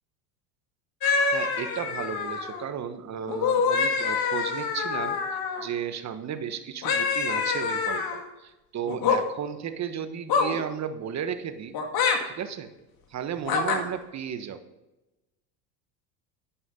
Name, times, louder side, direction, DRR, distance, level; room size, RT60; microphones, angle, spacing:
sound 1, 1.0-2.6 3.3-5.7 6.8-8.2 8.9-9.2 10.3-10.6 11.7-12.2 13.4-13.8, left 5 dB, 50° left, 2.2 m, -26 dB
voice 1, 1.3-12.7 13.1-14.6, right 8 dB, 35° right, 10 dB, 1.3 m, -34 dB
10.5 x 10.0 x 3.8 m, 1.0 s
supercardioid pair, 95°, 47 cm